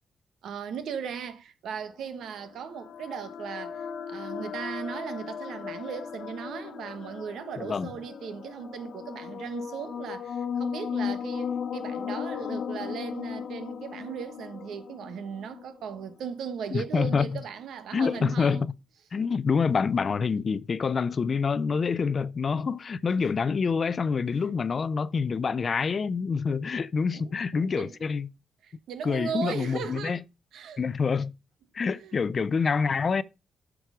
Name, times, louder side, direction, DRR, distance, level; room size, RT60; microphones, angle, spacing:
voice 1, 0.4-18.6 27.1-28.0 28.6-30.2 30.5-30.8 31.9-32.2, right 7 dB, 90° right, 1.2 m, -37 dB
sound 1, 2.0-16.1, left 7 dB, 60° left, 1.0 m, -36 dB
voice 2, 7.6-7.9 16.7-17.3 17.9-18.7 19.1-28.3 29.0-30.2 30.8-31.3 31.7-33.2, left 5 dB, 40° left, 0.4 m, -26 dB
8.0 x 6.1 x 4.8 m
wide cardioid pair, 140°, 0 cm